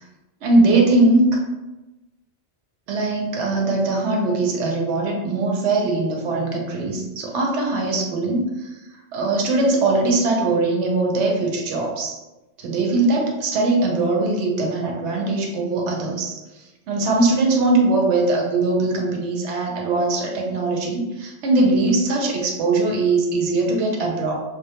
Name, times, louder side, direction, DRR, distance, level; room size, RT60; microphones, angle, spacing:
voice 1, 0.4-1.4 2.9-8.7 9.1-12.2 12.6-16.3 16.9-24.3, right 2 dB, 85° right, 0 dB, 0.9 m, -21 dB
2.2 x 2.2 x 2.8 m, 1.1 s
omnidirectional pair, 1.2 m